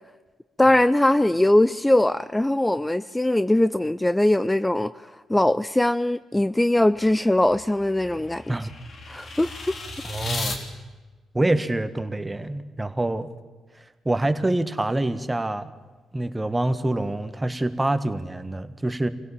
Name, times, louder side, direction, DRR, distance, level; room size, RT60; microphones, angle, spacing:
voice 1, 0.6-4.9 5.3-8.4 9.1-9.5, left 1 dB, 15° left, 0.6 m, -21 dB
sound 1, 7.0-10.6, left 2 dB, 55° left, 3.4 m, -35 dB
voice 2, 10.0-10.6 11.3-13.3 14.1-15.7 16.1-19.1, right 1 dB, 20° right, 1.7 m, -26 dB
25.0 x 16.5 x 7.4 m
hypercardioid pair, 45°, 0 cm